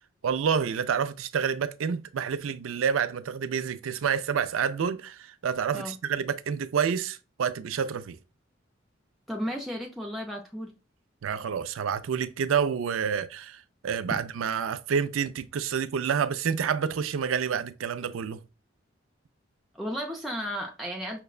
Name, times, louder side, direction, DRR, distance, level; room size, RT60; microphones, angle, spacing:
voice 1, 0.2-8.2 11.2-18.4, right 7 dB, 85° right, 0.4 m, -28 dB
voice 2, 9.3-10.7 19.7-21.2, equal, ahead, 0.4 m, -34 dB
5.8 x 2.1 x 2.3 m
head